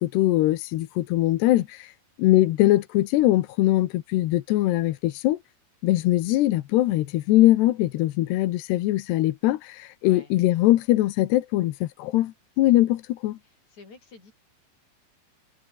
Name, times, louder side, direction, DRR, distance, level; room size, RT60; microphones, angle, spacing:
voice 1, 0.0-1.9 2.2-5.4 5.8-13.4, left 16 dB, 85° left, 3.2 m, -22 dB
voice 2, 10.0-10.4 13.4-14.3, left 4 dB, 45° left, 8.6 m, -50 dB
omnidirectional pair, 4.7 m